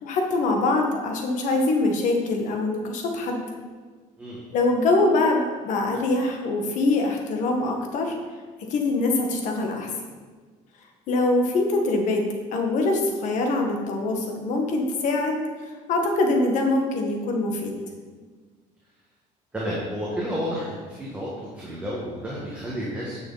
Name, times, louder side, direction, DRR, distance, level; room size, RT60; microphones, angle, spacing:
voice 1, 0.0-3.4 4.5-8.1 8.7-9.9 11.1-12.2 12.5-15.4 15.9-17.7, left 2 dB, 60° left, 2 dB, 1.5 m, -23 dB
voice 2, 4.2-4.5 19.5-23.2, equal, 10° right, -6 dB, 1.5 m, -31 dB
9.5 x 6.2 x 4.0 m, 1.5 s
cardioid pair, 155°, 14 cm